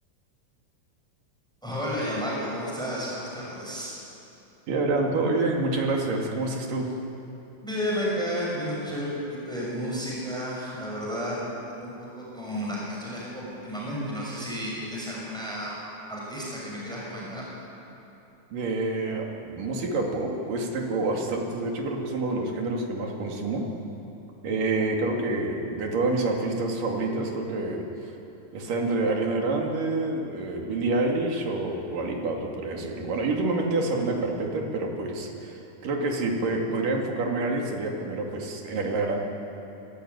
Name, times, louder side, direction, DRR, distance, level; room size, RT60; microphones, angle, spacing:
voice 1, 1.6-4.0 7.6-11.4 11.7-15.8 16.1-17.4, equal, ahead, -5 dB, 6.2 m, -32 dB
voice 2, 4.7-6.9 18.5-23.6 24.4-28.1 28.5-39.2, right 2 dB, 80° right, 0 dB, 4.2 m, -27 dB
23.0 x 16.0 x 9.5 m, 3.0 s
omnidirectional pair, 3.8 m